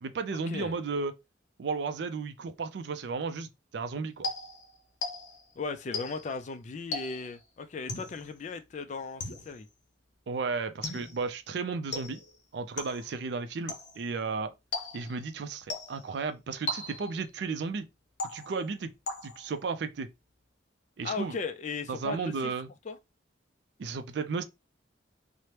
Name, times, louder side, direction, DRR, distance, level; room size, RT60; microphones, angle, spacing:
voice 1, 0.0-1.1 1.6-4.3 10.3-12.2 12.5-14.5 14.9-17.9 18.3-18.9 19.2-20.1 21.0-21.4 21.9-22.7 23.8-24.4, right 4 dB, 60° right, 0.4 m, -34 dB
sound 1, 4.2-5.5 5.9-6.4 6.9-7.4 7.9-8.3 9.2-9.7 10.8-11.3 11.9-12.4 12.8-13.2 13.7-14.1 14.7-15.2 15.7-16.1 16.7-17.2 18.2-18.7 19.1-19.5, left 2 dB, 65° left, 0.7 m, -37 dB
voice 2, 5.6-9.7 21.0-22.5 22.9-23.0, left 4 dB, 35° left, 0.3 m, -37 dB
2.9 x 2.0 x 3.1 m
head